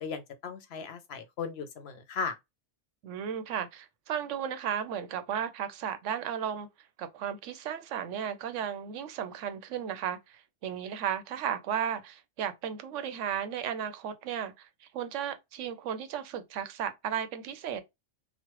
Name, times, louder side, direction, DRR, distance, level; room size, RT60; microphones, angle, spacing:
voice 1, 0.0-2.4, left 5 dB, 65° left, 0.7 m, -37 dB
voice 2, 3.0-6.7 7.0-17.8, right 9 dB, 80° right, 0.9 m, -34 dB
3.1 x 2.1 x 2.9 m
omnidirectional pair, 1.2 m